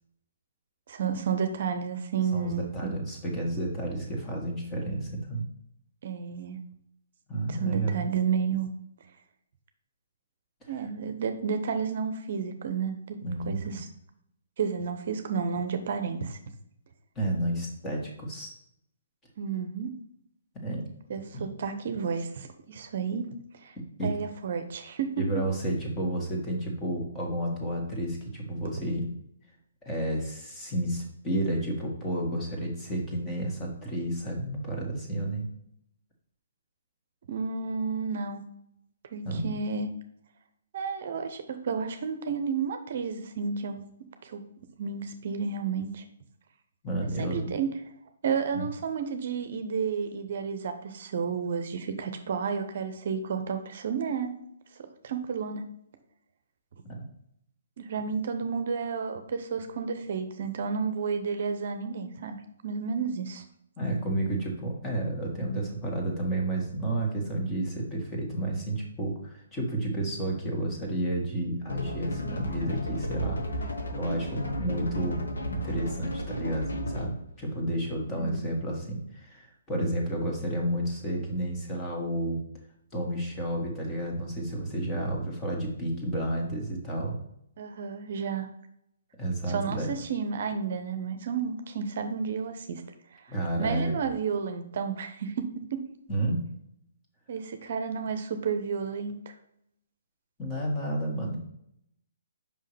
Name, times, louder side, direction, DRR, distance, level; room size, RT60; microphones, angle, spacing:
voice 1, 0.9-2.9 6.0-6.6 7.5-8.7 10.7-13.2 13.5-13.9 14.6-16.4 19.4-19.9 21.1-23.8 24.0-25.2 37.3-38.4 39.1-39.9 40.7-43.8 44.2-44.4 44.8-46.0 47.0-47.7 48.2-54.4 54.8-55.6 57.8-62.4 62.6-63.4 78.1-78.5 87.6-88.5 89.5-92.8 93.3-95.8 97.3-99.3, right 6 dB, 55° right, 8 dB, 0.7 m, -31 dB
voice 2, 2.3-5.4 7.3-8.0 13.2-13.8 17.2-18.5 20.6-20.9 21.3-21.4 24.0-24.2 25.2-29.1 29.8-35.4 39.2-39.5 46.8-47.5 48.5-48.6 56.9-57.0 63.8-73.4 73.9-75.2 75.5-82.4 82.9-87.1 89.2-89.9 93.3-93.9 96.1-96.4 100.4-101.4, right 1 dB, 15° left, -1 dB, 2.0 m, -31 dB
sound 1, 71.7-77.2, equal, 75° left, 1.4 m, -33 dB
5.6 x 5.5 x 3.3 m, 0.75 s
figure-of-eight pair, 135°, 0 cm